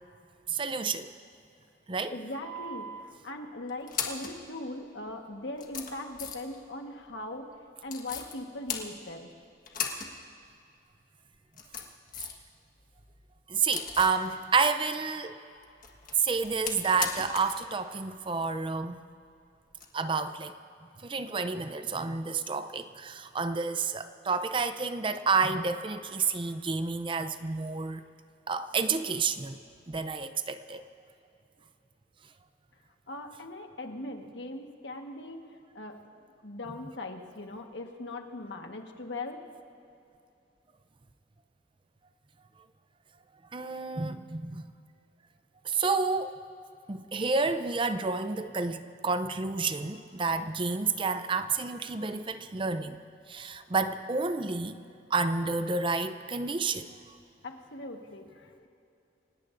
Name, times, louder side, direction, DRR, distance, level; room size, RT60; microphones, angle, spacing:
voice 1, 0.5-1.1 1.9-2.1 13.5-15.4 16.2-19.0 19.9-20.5 21.0-28.1 28.5-29.6 29.9-30.8 43.5-44.6 45.6-46.4 46.9-53.0 53.3-54.8 55.1-56.9, right 4 dB, 30° right, 10 dB, 0.5 m, -30 dB
voice 2, 2.1-9.3 33.1-35.5 35.7-36.0 36.4-39.4 57.4-58.7, left 2 dB, 75° left, 4 dB, 1.4 m, -40 dB
sound 1, 2.4-3.0 3.7-4.4 5.1-5.2 5.6-6.6 7.9-8.3 8.7-9.3 9.7-10.1 10.4-10.5 11.3-12.5 12.8-14.2 15.6-17.6 17.8-17.9 19.7-19.9, left 6 dB, 50° left, 1.5 m, -37 dB
28.5 x 17.5 x 2.6 m, 2.7 s
head